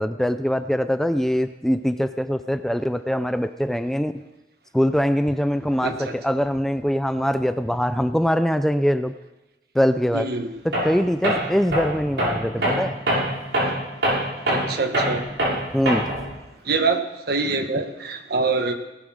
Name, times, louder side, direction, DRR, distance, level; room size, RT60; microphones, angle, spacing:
voice 1, 0.0-4.1 4.7-9.1 9.7-10.3 10.6-13.0 15.7-16.1, equal, ahead, 10 dB, 0.4 m, -22 dB
voice 2, 5.8-6.1 10.1-10.5 12.6-12.7 14.5-15.2 16.7-18.7, right 3 dB, 60° right, 7 dB, 1.4 m, -25 dB
Tools, 10.7-11.0 11.2-16.3, right 1 dB, 75° right, 6.5 m, -23 dB
18.0 x 8.9 x 6.4 m, 1.1 s
head